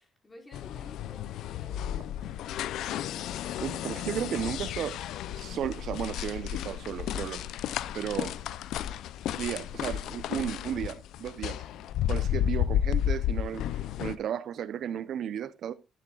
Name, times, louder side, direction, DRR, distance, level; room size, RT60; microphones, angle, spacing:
voice 1, 0.0-2.9, left 1 dB, 25° left, 5.1 m, -54 dB
sound 1, 0.5-14.2, left 11 dB, 85° left, 0.5 m, -32 dB
voice 2, 3.6-5.0 5.4-7.5 7.9-8.3 9.3-11.6 12.1-15.7, right 9 dB, 70° right, 0.8 m, -34 dB
12.0 x 9.9 x 2.4 m
cardioid pair, 90°, 0 cm